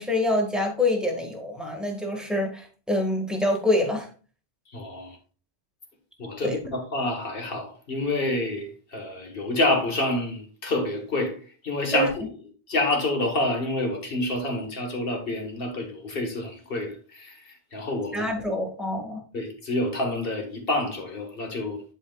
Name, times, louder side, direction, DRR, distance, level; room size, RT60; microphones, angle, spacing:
voice 1, 0.0-4.1 6.4-6.5 11.9-12.1 18.1-19.2, left 1 dB, ahead, 1.7 m, -26 dB
voice 2, 4.7-5.2 6.2-12.3 12.7-18.4 19.3-21.8, left 2 dB, 65° left, 1.8 m, -28 dB
11.0 x 4.8 x 2.3 m
omnidirectional pair, 1.0 m